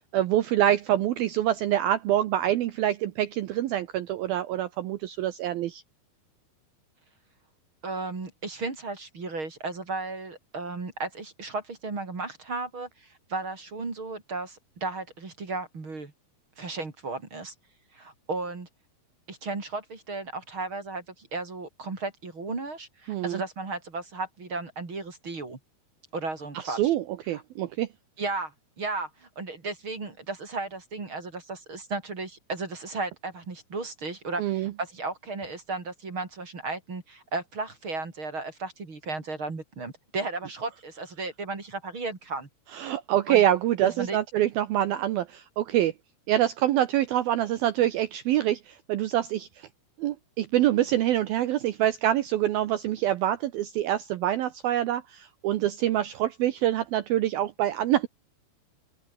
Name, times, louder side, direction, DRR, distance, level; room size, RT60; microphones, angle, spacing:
voice 1, 0.1-5.8 23.1-23.4 26.6-27.9 34.4-34.7 42.7-45.9 46.3-49.7 50.0-58.1, right 12 dB, 70° right, 2.5 m, -25 dB
voice 2, 7.8-16.1 16.6-17.5 17.9-18.7 19.3-25.6 26.1-26.8 27.3-27.4 28.2-42.5 43.3-43.4 43.8-44.2, right 3 dB, 30° right, 4.1 m, -34 dB
open air
omnidirectional pair, 5.1 m